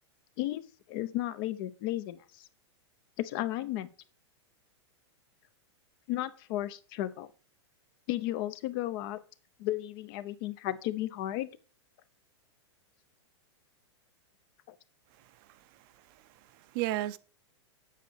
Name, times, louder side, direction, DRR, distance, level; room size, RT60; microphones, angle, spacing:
voice 1, 0.9-2.5 3.2-3.9 6.1-7.3 8.1-9.2 9.6-11.5 14.7-14.8, left 14 dB, 50° left, 0.8 m, -34 dB
voice 2, 15.2-17.2, right 15 dB, 50° right, 0.5 m, -37 dB
8.0 x 7.4 x 3.4 m
hypercardioid pair, 115°, 15 cm